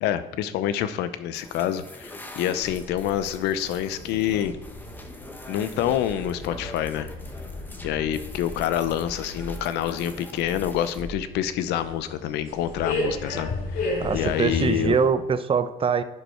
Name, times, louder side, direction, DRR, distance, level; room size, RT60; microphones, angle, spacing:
voice 1, 0.0-4.6 5.5-7.1 7.8-15.0, left 11 dB, 90° left, 13 dB, 0.6 m, -27 dB
sound 1, 1.3-11.0, left 1 dB, 10° left, 1.1 m, -43 dB
sound 2, 2.6-15.1, left 2 dB, 55° left, 2.7 m, -35 dB
voice 2, 14.0-16.0, right 6 dB, 30° right, 12 dB, 0.6 m, -23 dB
11.0 x 5.4 x 4.4 m, 1.1 s
cardioid pair, 110°, 17 cm